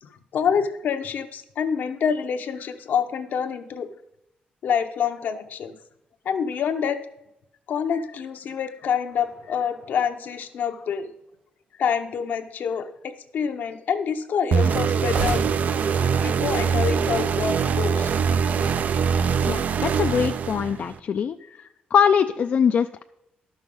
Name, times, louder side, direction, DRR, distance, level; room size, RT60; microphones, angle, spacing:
voice 1, 0.0-3.9 4.6-5.7 6.2-7.0 7.7-11.1 11.8-15.4 16.2-18.1, left 7 dB, 70° left, 7 dB, 0.9 m, -27 dB
sound 1, 9.1-10.9 15.0-18.1, right 4 dB, 80° right, 3.8 m, -36 dB
sound 2, 14.5-21.0, right 6 dB, 55° right, 0.4 m, -23 dB
voice 2, 19.5-21.4 21.9-23.0, left 7 dB, 55° left, 7 dB, 0.4 m, -22 dB
12.0 x 6.3 x 5.4 m, 0.86 s
cardioid pair, 120°, 3 cm